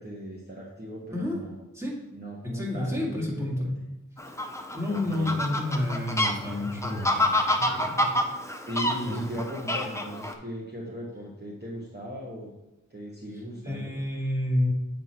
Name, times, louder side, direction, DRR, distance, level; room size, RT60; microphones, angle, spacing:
voice 1, 0.0-1.5 2.1-3.7 4.9-5.4 8.7-12.5 12.9-13.9, equal, 30° right, -4 dB, 1.2 m, -37 dB
voice 2, 2.4-3.7 4.7-8.1 9.0-9.2 13.6-14.7, left 1 dB, 10° right, -4 dB, 2.0 m, -30 dB
Fowl, 4.2-10.3, left 1 dB, 10° left, 0.7 m, -28 dB
8.0 x 4.2 x 4.4 m, 1.0 s
wide cardioid pair, 65°, 32 cm